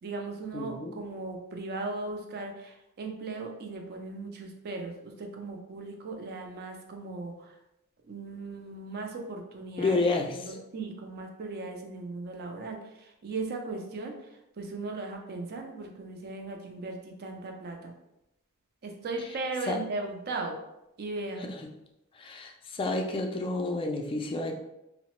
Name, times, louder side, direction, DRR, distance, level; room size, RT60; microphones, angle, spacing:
voice 1, 0.0-7.6 8.0-10.0 10.3-17.9 18.8-20.6 21.0-21.4, right 3 dB, 45° right, 3 dB, 0.4 m, -37 dB
voice 2, 0.5-0.9 9.8-10.6 19.7-19.8 21.4-21.5 22.1-24.5, left 3 dB, 25° left, 2 dB, 0.3 m, -30 dB
2.8 x 2.0 x 3.0 m, 0.89 s
head